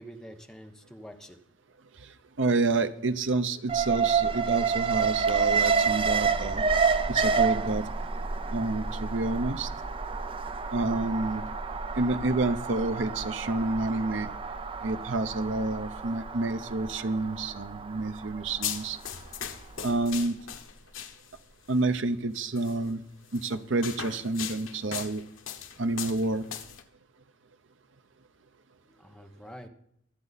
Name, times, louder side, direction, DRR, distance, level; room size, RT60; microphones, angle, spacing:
voice 1, 0.0-1.4 28.9-29.7, equal, 5° left, 4 dB, 1.1 m, -46 dB
voice 2, 2.4-6.6 7.1-7.8 8.5-9.7 10.7-11.4 12.0-14.3 14.8-19.0 19.8-20.4 21.7-23.0 23.3-25.2 25.8-26.5, right 2 dB, 70° right, 10 dB, 0.8 m, -29 dB
Alarm, 3.7-19.8 20.1-20.2, right 5 dB, 30° right, 0.6 m, -29 dB
sound 1, 18.6-21.5 22.6-22.8 23.3-26.8, left 9 dB, 90° left, 1.1 m, -38 dB
24.0 x 8.0 x 4.1 m, 0.72 s
head